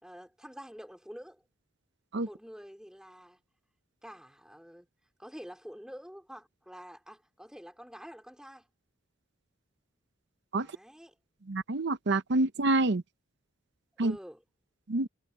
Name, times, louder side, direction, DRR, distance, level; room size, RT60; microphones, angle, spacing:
voice 1, 0.0-1.4 2.2-3.4 4.0-4.9 5.2-8.7 10.6-11.1 14.0-14.4, equal, 5° right, 4.3 m, -48 dB
voice 2, 11.5-13.0 14.0-14.2 14.9-15.1, right 2 dB, 55° right, 0.8 m, -27 dB
head